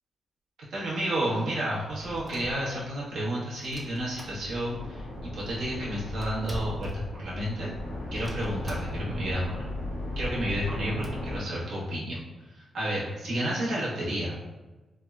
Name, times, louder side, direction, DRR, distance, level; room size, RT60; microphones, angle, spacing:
voice 1, 0.7-7.7 8.1-9.6 10.2-12.2 12.5-14.4, right 1 dB, 80° right, -7 dB, 1.0 m, -31 dB
sound 1, 1.7-3.1 3.6-4.9 5.2-5.3 5.4-7.7 8.2-9.2 9.6-9.7 9.9-10.0 10.5-11.1, equal, 10° right, 0.4 m, -44 dB
sound 2, 3.9-11.4, left 1 dB, 85° left, 0.7 m, -37 dB
3.4 x 2.1 x 2.3 m, 1.1 s
cardioid pair, 115°, 0 cm